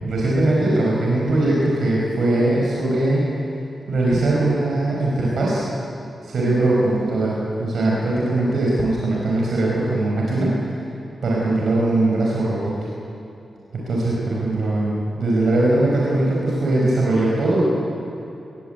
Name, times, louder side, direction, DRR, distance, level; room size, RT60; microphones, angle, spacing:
voice 1, 0.0-3.2 3.9-5.6 6.2-10.6 11.2-12.7 13.7-17.6, right 2 dB, 75° right, -4 dB, 5.6 m, -20 dB
20.5 x 20.0 x 8.4 m, 2.9 s
cardioid pair, 70°, 0 cm